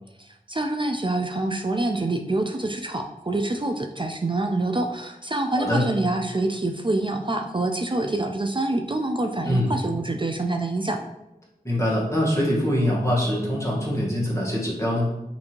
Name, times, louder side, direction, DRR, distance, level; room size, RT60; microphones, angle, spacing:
voice 1, 0.5-11.0, right 2 dB, 30° right, 3 dB, 0.4 m, -26 dB
voice 2, 11.6-15.1, equal, 20° left, -5 dB, 1.4 m, -23 dB
5.8 x 2.7 x 2.9 m, 0.92 s
wide cardioid pair, 45°, 16 cm